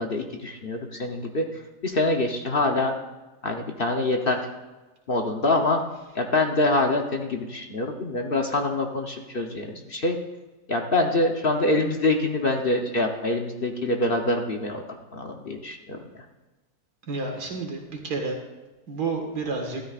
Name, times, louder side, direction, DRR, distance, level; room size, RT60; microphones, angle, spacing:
voice 1, 0.0-1.4 1.8-2.9 3.4-4.4 5.1-5.8 6.1-10.2 10.7-14.8 15.1-16.0, left 2 dB, 45° left, 2 dB, 0.9 m, -25 dB
voice 2, 17.1-18.4 18.9-19.8, right 4 dB, 90° right, 2 dB, 2.3 m, -30 dB
13.0 x 12.5 x 2.4 m, 1.2 s
omnidirectional pair, 1.7 m